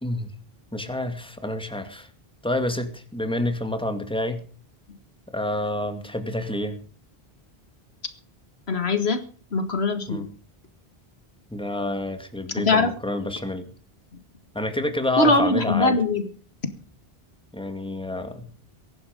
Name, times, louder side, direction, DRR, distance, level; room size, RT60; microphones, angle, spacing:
voice 1, 0.7-2.1 2.4-4.4 5.3-6.7 10.1-10.3 11.5-13.7 14.5-16.0 17.5-18.6, left 1 dB, 5° left, 7 dB, 2.3 m, -28 dB
voice 2, 8.7-9.2 9.5-10.3 12.6-12.9 15.2-16.3, left 3 dB, 90° left, 9 dB, 2.2 m, -21 dB
22.0 x 11.5 x 5.3 m, 0.40 s
omnidirectional pair, 1.0 m